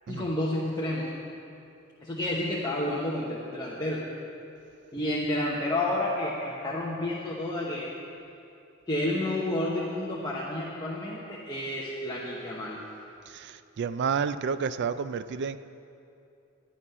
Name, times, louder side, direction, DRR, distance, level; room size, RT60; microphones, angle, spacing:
voice 1, 0.1-1.1 2.0-4.1 4.9-7.9 8.9-12.8, left 1 dB, 20° left, -5 dB, 0.9 m, -30 dB
voice 2, 13.3-15.6, right 6 dB, 50° right, 13 dB, 0.4 m, -30 dB
11.0 x 9.9 x 5.5 m, 2.6 s
head